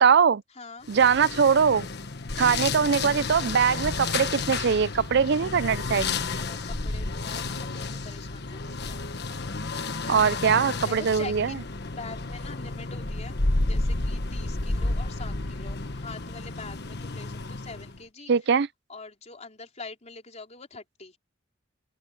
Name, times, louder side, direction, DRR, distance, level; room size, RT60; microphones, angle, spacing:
voice 1, 0.0-0.4 0.9-1.9 2.4-6.1 10.1-11.5 18.3-18.7, right 6 dB, 60° right, 0.5 m, -22 dB
voice 2, 0.5-0.9 2.3-2.6 6.1-9.6 10.0-10.2 10.8-13.4 13.6-18.3 18.9-21.2, left 3 dB, 35° left, 3.9 m, -44 dB
sound 1, 0.9-18.0, left 3 dB, 60° left, 1.4 m, -31 dB
open air
head